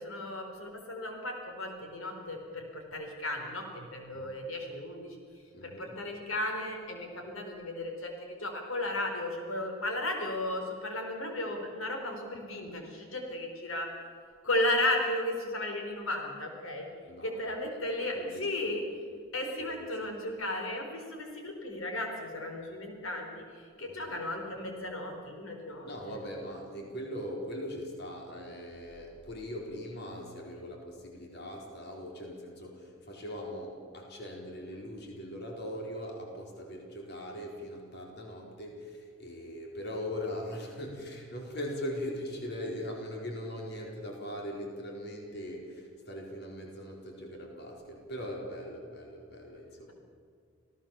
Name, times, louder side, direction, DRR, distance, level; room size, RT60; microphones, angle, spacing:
voice 1, 0.0-5.2 5.6-13.9 14.4-16.9 17.2-18.8 19.3-26.2, left 1 dB, 80° left, 2 dB, 4.2 m, -35 dB
voice 2, 5.5-6.0 17.1-18.8 19.6-19.9 23.9-24.2 25.8-49.9, equal, 50° left, 0 dB, 4.3 m, -41 dB
27.5 x 17.5 x 7.2 m, 2.2 s
head